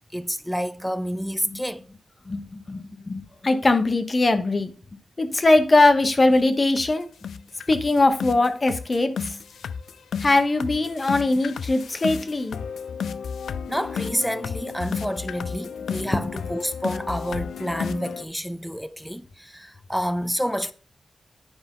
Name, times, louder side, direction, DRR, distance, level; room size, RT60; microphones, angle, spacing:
voice 1, 0.1-1.8 13.7-20.7, equal, ahead, 0.4 m, -29 dB
voice 2, 2.3-4.7 5.2-7.1 7.7-9.4 10.2-12.6 16.1-16.3, left 2 dB, 30° left, 1.0 m, -21 dB
sound 1, 5.8-5.9 6.3-6.4 6.8-6.9 7.2-18.2, left 6 dB, 85° left, 0.4 m, -33 dB
9.9 x 5.1 x 3.7 m
wide cardioid pair, 95°, 0 cm